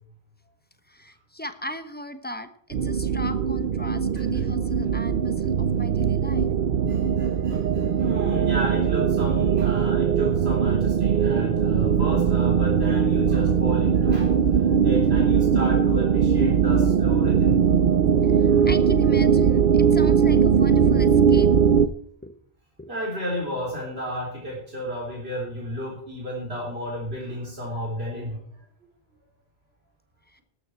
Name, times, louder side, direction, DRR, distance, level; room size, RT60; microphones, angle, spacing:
voice 1, 0.9-6.5 17.4-17.5 18.2-21.5 22.2-22.4 22.8-22.9 30.3-30.4, left 1 dB, 10° left, 10 dB, 1.0 m, -38 dB
sound 1, 2.7-21.9, right 7 dB, 65° right, 0.8 m, -20 dB
voice 2, 6.9-17.6 18.5-18.7 22.9-28.4, equal, 90° right, -2 dB, 3.8 m, -32 dB
13.0 x 13.0 x 4.4 m, 0.62 s
omnidirectional pair, 1.0 m